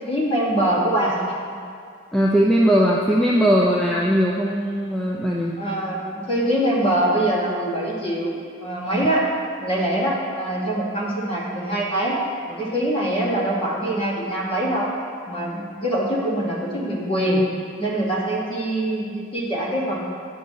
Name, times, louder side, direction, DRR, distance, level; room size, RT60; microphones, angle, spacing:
voice 1, 0.1-1.2 5.6-8.3 8.6-9.3 9.6-12.2 12.5-14.9 15.3-17.4 17.8-20.0, right 1 dB, 25° left, -4 dB, 1.1 m, -23 dB
voice 2, 2.1-5.6, equal, 5° left, -4 dB, 0.3 m, -19 dB
8.7 x 6.9 x 2.7 m, 2.2 s
head